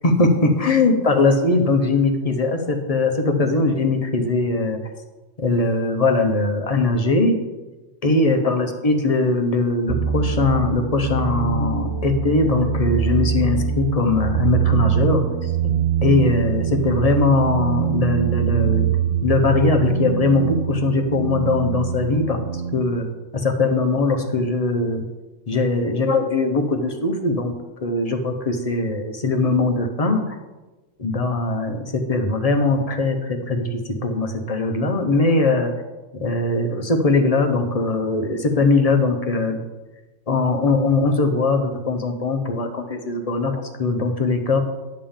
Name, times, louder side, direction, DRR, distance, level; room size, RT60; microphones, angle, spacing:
voice 1, 0.0-4.8 5.4-7.4 8.0-15.7 16.0-18.9 19.2-22.4 22.7-23.1 23.3-25.0 25.5-27.5 27.8-30.4 31.0-35.7 36.2-39.6 40.3-44.6, left 3 dB, 35° left, 5 dB, 0.7 m, -20 dB
sound 1, 9.9-22.8, right 7 dB, 55° right, 0.8 m, -23 dB
10.5 x 3.6 x 7.1 m, 1.1 s
omnidirectional pair, 1.5 m